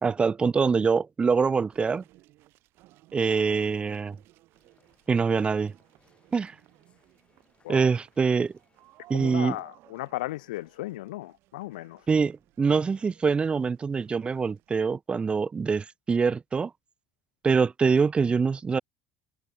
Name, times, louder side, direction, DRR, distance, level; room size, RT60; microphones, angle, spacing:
voice 1, 0.0-2.0 3.1-4.2 5.1-5.7 6.3-6.5 7.7-8.5 9.1-9.6 12.1-16.7 17.4-18.8, right 5 dB, 25° right, 0.6 m, -24 dB
sound 1, 1.7-14.8, right 18 dB, 60° right, 5.1 m, -57 dB
sound 2, 4.5-9.5, left 4 dB, 25° left, 6.5 m, -67 dB
voice 2, 9.1-12.1, left 18 dB, 85° left, 0.6 m, -36 dB
open air
hypercardioid pair, 85°, 4 cm